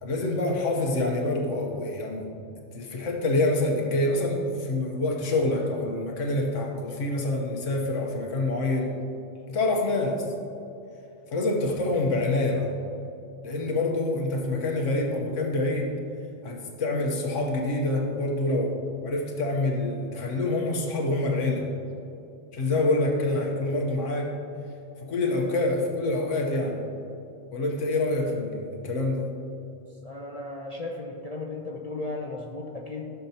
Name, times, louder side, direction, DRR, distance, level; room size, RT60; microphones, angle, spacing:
voice 1, 0.0-2.3 2.7-8.9 9.5-10.3 11.3-12.7 13.4-16.0 16.4-18.8 19.0-21.7 22.5-24.4 25.0-26.8 27.5-29.3, left 2 dB, 80° left, 0 dB, 1.5 m, -26 dB
voice 2, 30.0-33.1, left 2 dB, 35° left, -1 dB, 0.7 m, -35 dB
14.5 x 6.8 x 2.9 m, 2.7 s
omnidirectional pair, 1.3 m